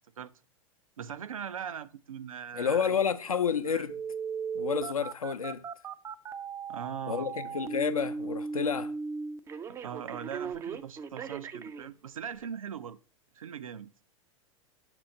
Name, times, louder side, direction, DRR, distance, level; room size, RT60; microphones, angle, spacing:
voice 1, 1.0-3.0 3.6-3.8 6.7-7.3 9.7-13.0 13.3-13.9, right 8 dB, 75° right, 0.5 m, -40 dB
voice 2, 2.5-4.0 4.5-5.6 7.1-8.9, left 6 dB, 80° left, 0.6 m, -30 dB
Telephone, 3.9-11.9 12.4-12.5, right 5 dB, 15° right, 0.3 m, -37 dB
7.5 x 3.0 x 5.1 m
figure-of-eight pair, 90°, 18 cm